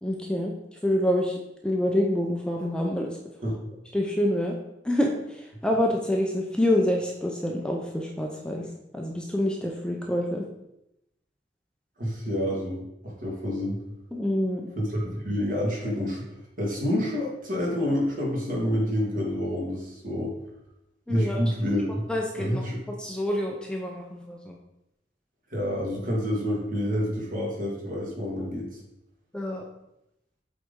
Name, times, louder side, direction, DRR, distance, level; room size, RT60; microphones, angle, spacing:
voice 1, 0.0-0.5 0.8-1.4 1.6-3.2 3.9-4.6 4.8-8.7 8.9-10.5 14.1-14.6 21.1-21.4 22.1-22.6 23.0-24.6 29.3-29.6, left 1 dB, 5° left, 0 dB, 0.6 m, -27 dB
voice 2, 12.0-13.8 14.8-16.2 16.6-20.3 21.1-22.1 22.4-22.8 25.5-28.8, equal, 50° right, -3 dB, 2.0 m, -28 dB
7.6 x 4.1 x 3.7 m, 0.86 s
head